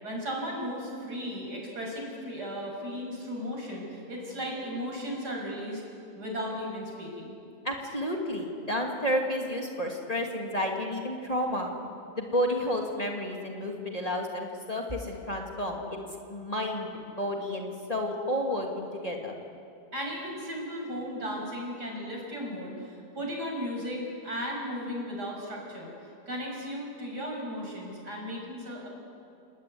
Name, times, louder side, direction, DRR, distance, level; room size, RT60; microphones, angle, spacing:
voice 1, 0.0-5.8 6.2-7.4 19.9-28.9, equal, 80° right, -1 dB, 7.1 m, -36 dB
voice 2, 7.6-11.7 12.1-16.0 16.3-16.9 17.2-19.3, equal, 20° left, 0 dB, 2.7 m, -31 dB
29.0 x 20.0 x 9.6 m, 2.6 s
omnidirectional pair, 1.7 m